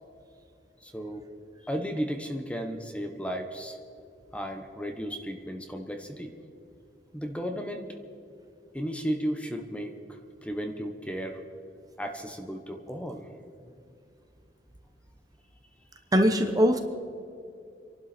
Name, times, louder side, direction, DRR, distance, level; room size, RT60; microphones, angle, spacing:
voice 1, 0.8-1.2 1.6-3.8 4.3-6.3 7.1-7.9 8.7-11.4 12.0-13.2, equal, 5° left, 5 dB, 1.1 m, -34 dB
voice 2, 16.1-16.8, equal, 20° right, 6 dB, 1.0 m, -21 dB
28.0 x 11.5 x 4.4 m, 2.6 s
head